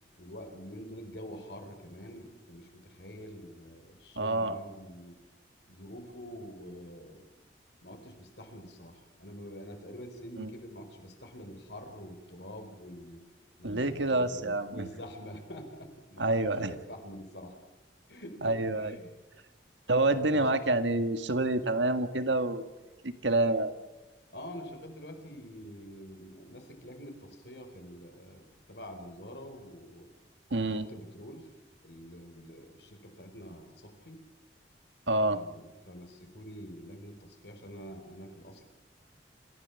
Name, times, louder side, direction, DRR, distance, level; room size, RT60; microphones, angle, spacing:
voice 1, 0.2-5.2 5.7-7.3 7.8-13.2 13.6-17.6 18.1-19.1 20.3-20.6 24.3-30.1 30.6-31.5 31.8-34.2 35.3-38.6, equal, 65° left, 6 dB, 4.5 m, -46 dB
voice 2, 4.2-4.6 10.4-10.5 13.6-14.9 16.2-16.7 18.4-19.0 19.9-22.7 23.0-23.7 30.5-30.9 35.1-35.4, right 2 dB, 90° right, 9 dB, 1.9 m, -28 dB
27.0 x 15.5 x 7.2 m, 1.1 s
head